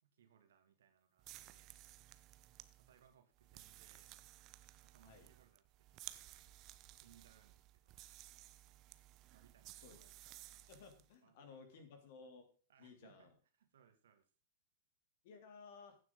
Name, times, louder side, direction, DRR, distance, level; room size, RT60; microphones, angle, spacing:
voice 1, 0.0-1.8 2.8-4.1 4.8-6.4 6.9-8.0 9.3-10.4 11.2-12.1 12.7-13.3 13.6-14.3, right 8 dB, 60° right, 7 dB, 2.3 m, -69 dB
sound 1, 1.2-11.1, right 15 dB, 35° right, 0.8 m, -57 dB
voice 2, 10.7-12.5 12.8-13.3 15.2-16.0, left 4 dB, 50° left, 7 dB, 3.0 m, -57 dB
15.5 x 7.5 x 3.8 m, 0.39 s
figure-of-eight pair, 100°, 0 cm